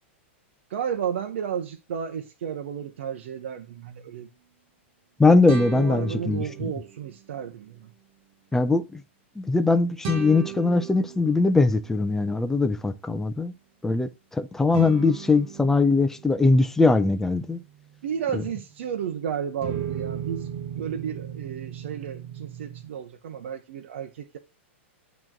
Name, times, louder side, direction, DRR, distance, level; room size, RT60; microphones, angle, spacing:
voice 1, 0.7-4.3 5.7-7.9 18.0-24.4, right 8 dB, 70° right, 0.8 m, -33 dB
voice 2, 5.2-6.7 8.5-9.0 9.4-13.5 13.8-17.6 18.3-18.4, left 3 dB, 5° left, 0.5 m, -21 dB
sound 1, 5.5-7.1 10.0-12.4 14.7-19.1 19.6-22.8, right 9 dB, 45° right, 1.4 m, -37 dB
8.7 x 3.1 x 5.9 m
hypercardioid pair, 135°, 7 cm